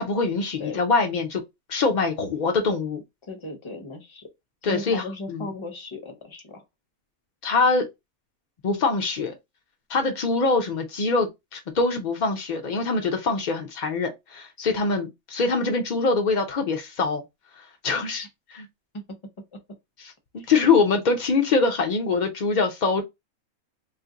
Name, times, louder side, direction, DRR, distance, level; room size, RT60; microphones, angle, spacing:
voice 1, 0.0-1.4 1.7-3.0 4.6-5.5 7.4-7.9 8.6-9.3 9.9-17.2 17.6-18.7 20.0-20.1 20.5-23.0, left 4 dB, 70° left, 0.4 m, -24 dB
voice 2, 3.2-4.3 4.6-6.6 18.9-19.0 19.5-19.6 20.4-20.5, left 2 dB, 30° left, 0.6 m, -36 dB
2.7 x 2.5 x 3.7 m
omnidirectional pair, 1.5 m